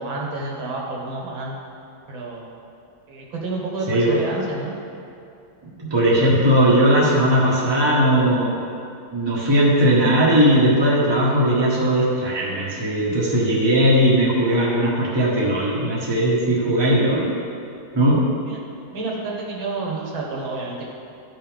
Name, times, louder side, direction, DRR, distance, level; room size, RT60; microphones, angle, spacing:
voice 1, 0.0-1.6 2.1-2.5 3.1-4.7 18.5-18.6 18.9-20.9, right 3 dB, 90° right, -2 dB, 2.2 m, -29 dB
voice 2, 3.9-4.2 5.6-8.6 9.1-17.3 17.9-18.2, right 1 dB, 15° right, -5 dB, 1.3 m, -18 dB
13.0 x 5.5 x 3.6 m, 2.5 s
omnidirectional pair, 2.1 m